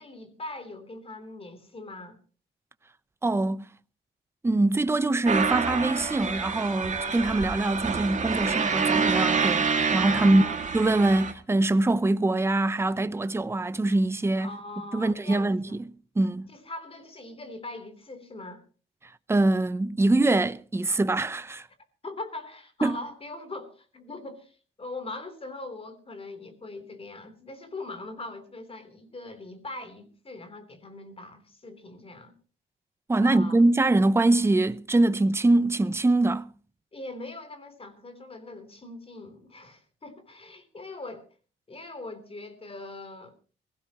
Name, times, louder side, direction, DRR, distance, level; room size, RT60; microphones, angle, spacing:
voice 1, 0.0-2.2 10.1-10.5 14.4-15.8 16.5-18.6 22.0-32.3 33.2-33.6 36.9-41.3 41.7-43.3, left 2 dB, 30° left, 3.4 m, -41 dB
voice 2, 3.2-3.7 4.4-10.4 10.7-14.5 14.9-15.9 16.2-16.5 19.3-21.7 22.8-23.0 33.1-36.5, right 2 dB, 15° right, 0.7 m, -23 dB
sound 1, 5.3-11.3, right 5 dB, 40° right, 2.2 m, -27 dB
22.0 x 16.0 x 3.0 m
cardioid pair, 125°, 20 cm